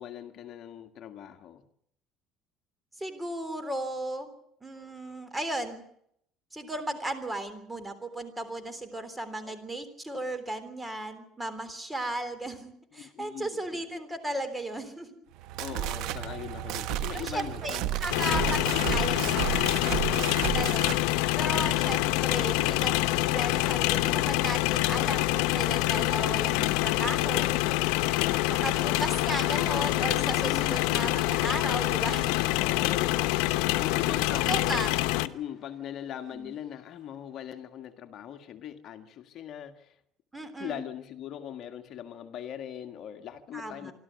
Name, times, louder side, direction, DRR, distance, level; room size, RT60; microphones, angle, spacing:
voice 1, 0.0-1.6 9.4-9.5 13.0-13.6 15.6-17.9 18.3-18.9 19.8-20.7 27.2-28.5 30.2-30.9 32.2-33.2 33.8-40.0 40.6-43.9, left 10 dB, 55° left, 7 dB, 1.7 m, -40 dB
voice 2, 3.0-4.3 4.6-5.8 6.5-15.2 15.7-15.8 17.1-20.0 20.5-21.0 21.4-23.0 23.3-27.5 28.5-32.3 34.0-35.0 36.3-36.5 40.3-40.8 43.5-43.9, right 1 dB, 10° right, 11 dB, 3.5 m, -35 dB
sound 1, 15.3-21.0, right 12 dB, 75° right, 1.4 m, -32 dB
sound 2, 18.1-35.3, left 17 dB, 85° left, 0.9 m, -26 dB
Cheering / Crowd, 22.7-37.2, left 7 dB, 35° left, 3.3 m, -50 dB
26.0 x 13.0 x 9.4 m, 0.72 s
cardioid pair, 115°, 0 cm